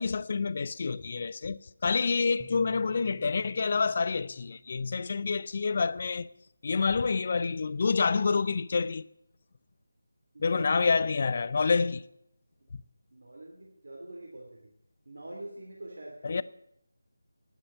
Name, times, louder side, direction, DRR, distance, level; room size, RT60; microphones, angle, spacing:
voice 1, 0.0-6.3 6.6-9.0 10.4-12.0 16.2-16.4, left 4 dB, 35° left, 0.5 m, -28 dB
sound 1, 2.4-5.7, left 1 dB, 15° left, 0.9 m, -56 dB
voice 2, 10.3-10.7 13.1-14.6 15.1-16.4, right 1 dB, 55° right, 2.7 m, -44 dB
10.5 x 9.8 x 9.2 m
figure-of-eight pair, 160°, 0 cm